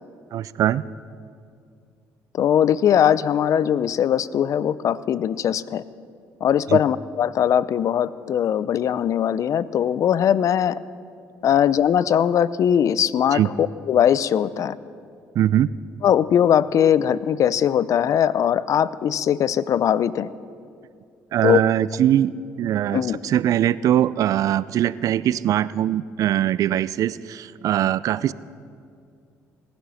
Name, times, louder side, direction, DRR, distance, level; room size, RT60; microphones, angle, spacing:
voice 1, 0.3-0.8 6.7-6.8 13.3-13.5 15.4-15.7 21.3-22.3 22.6-28.3, right 11 dB, 60° right, 19 dB, 0.4 m, -21 dB
voice 2, 2.3-5.8 6.4-10.8 11.4-14.8 16.0-20.3 21.4-21.6 22.9-23.2, left 9 dB, 55° left, 18 dB, 0.5 m, -20 dB
19.0 x 11.5 x 5.7 m, 2.3 s
supercardioid pair, 75°, 6 cm